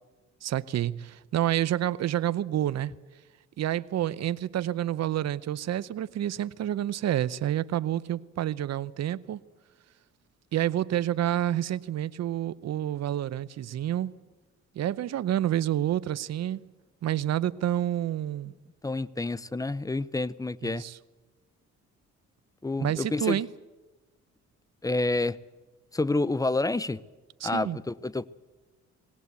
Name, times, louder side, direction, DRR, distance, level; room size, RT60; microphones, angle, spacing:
voice 1, 0.4-2.9 3.6-9.4 10.5-14.2 14.8-16.7 17.0-18.5 20.6-21.0 22.8-23.5 27.4-27.8, right 12 dB, 60° right, 0.7 m, -29 dB
voice 2, 18.8-20.8 22.6-23.4 24.8-25.4 25.9-27.0 27.4-28.3, left 2 dB, 10° left, 0.6 m, -28 dB
19.5 x 17.5 x 8.2 m
cardioid pair, 90°, 30 cm